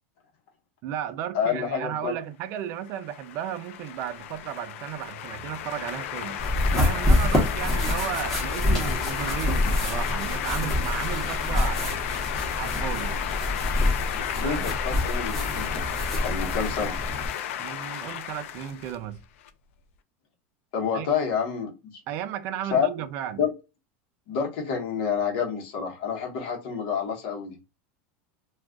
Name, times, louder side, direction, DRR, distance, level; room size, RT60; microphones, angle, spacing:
voice 1, 0.8-6.4 6.7-12.1 12.6-13.2 14.4-14.7 17.6-19.2 20.9-21.1 22.1-23.4, right 11 dB, 35° right, 0.4 m, -34 dB
voice 2, 1.3-2.1 14.1-15.8 16.2-17.0 20.7-21.7 22.7-22.9 23.4-23.5 24.3-27.6, left 7 dB, 55° left, 1.0 m, -28 dB
sound 1, 2.8-19.5, left 10 dB, 85° left, 0.4 m, -33 dB
sound 2, 6.4-17.3, left 1 dB, 5° left, 0.8 m, -26 dB
2.4 x 2.3 x 3.6 m
supercardioid pair, 170°, 7 cm